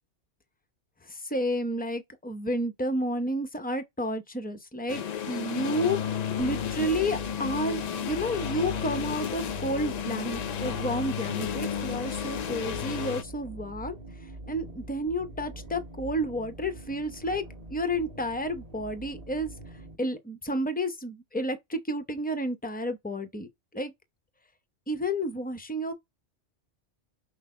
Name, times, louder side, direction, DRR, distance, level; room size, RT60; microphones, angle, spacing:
voice 1, 1.0-14.0 14.2-17.4 17.7-19.5 20.0-23.5 23.7-23.9 24.9-25.9, equal, 10° left, 0.5 m, -31 dB
sound 1, 4.9-13.2, left 8 dB, 75° left, 0.3 m, -32 dB
sound 2, 6.4-20.0, right 1 dB, 30° right, 1.4 m, -44 dB
5.9 x 2.1 x 3.7 m
omnidirectional pair, 1.2 m